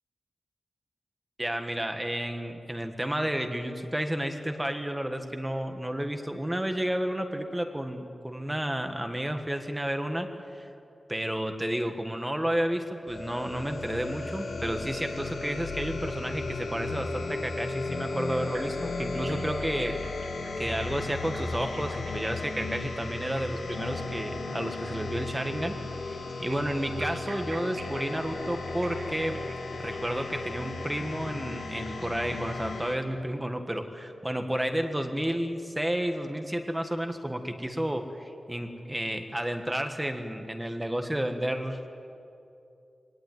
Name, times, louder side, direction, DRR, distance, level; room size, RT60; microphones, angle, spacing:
voice 1, 1.4-10.7 11.1-20.0 20.6-29.4 29.7-41.9, right 1 dB, 10° right, 6 dB, 1.5 m, -31 dB
sound 1, 13.1-33.0, left 3 dB, 90° left, 2.3 m, -35 dB
sound 2, 18.3-25.1 26.3-33.0, right 3 dB, 70° right, 3.4 m, -46 dB
23.0 x 19.0 x 9.3 m, 2.6 s
wide cardioid pair, 120°, 0 cm